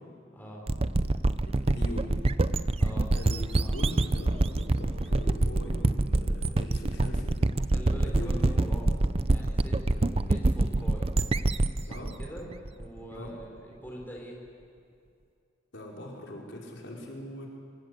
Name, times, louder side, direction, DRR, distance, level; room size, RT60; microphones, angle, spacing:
voice 1, 0.3-0.7 2.8-3.1 3.6-3.8 7.7-8.9 9.2-11.1 11.8-14.4, right 1 dB, 10° left, -2 dB, 4.4 m, -44 dB
sound 1, 0.7-13.3, right 2 dB, 30° right, 0.6 m, -26 dB
voice 2, 1.5-2.2 3.1-7.4 8.0-8.7 11.9-12.1 13.1-13.3 15.7-17.5, left 1 dB, 70° left, -2 dB, 5.2 m, -41 dB
25.0 x 23.5 x 8.3 m, 2.5 s
head